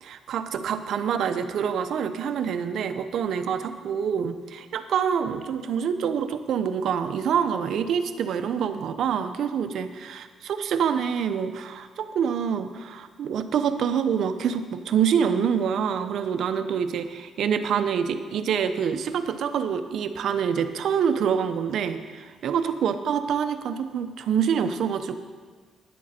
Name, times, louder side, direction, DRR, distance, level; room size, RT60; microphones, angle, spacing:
voice 1, 0.0-25.2, right 7 dB, 70° right, 10 dB, 0.7 m, -26 dB
11.5 x 10.0 x 4.3 m, 1.5 s
cardioid pair, 90°, 0 cm